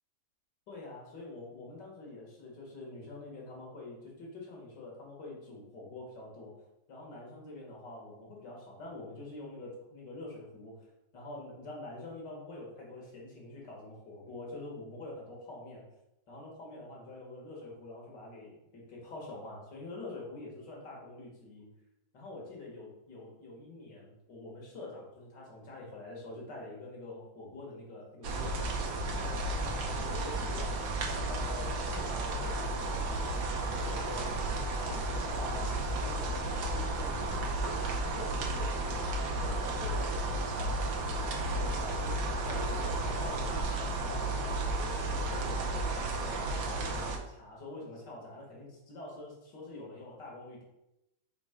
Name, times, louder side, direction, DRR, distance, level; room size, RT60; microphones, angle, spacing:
voice 1, 0.7-6.5 6.9-10.7 11.1-15.8 16.3-21.7 22.1-28.6 29.1-30.8 31.2-34.4 34.7-40.9 41.4-45.8 46.2-50.6, left 2 dB, 70° left, -3 dB, 2.4 m, -46 dB
sound 1, 28.2-47.2, right 2 dB, 80° right, 1.5 m, -33 dB
5.2 x 3.6 x 5.1 m, 0.89 s
omnidirectional pair, 2.0 m